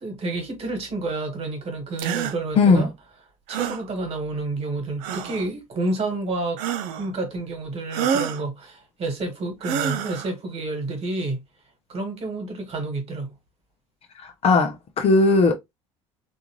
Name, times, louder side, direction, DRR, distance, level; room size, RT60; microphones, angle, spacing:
voice 1, 0.0-2.9 3.5-6.6 7.0-11.4 11.9-13.3, right 2 dB, 35° right, 1.6 m, -29 dB
sound 1, 2.0-2.4 3.5-3.8 5.0-5.5 6.6-7.1 7.9-8.4 9.6-10.3, right 8 dB, 55° right, 0.5 m, -27 dB
voice 2, 14.2-15.6, left 3 dB, 35° left, 0.7 m, -18 dB
3.5 x 2.6 x 3.0 m
figure-of-eight pair, 60°, 17 cm